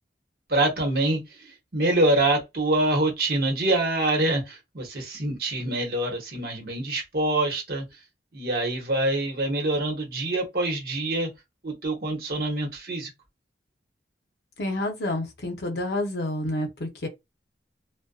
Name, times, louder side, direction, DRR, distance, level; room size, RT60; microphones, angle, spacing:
voice 1, 0.5-7.8 8.3-11.3 11.6-13.1, right 2 dB, 55° right, 1.0 m, -25 dB
voice 2, 14.6-17.1, left 1 dB, 65° left, 0.7 m, -29 dB
2.5 x 2.2 x 2.3 m
head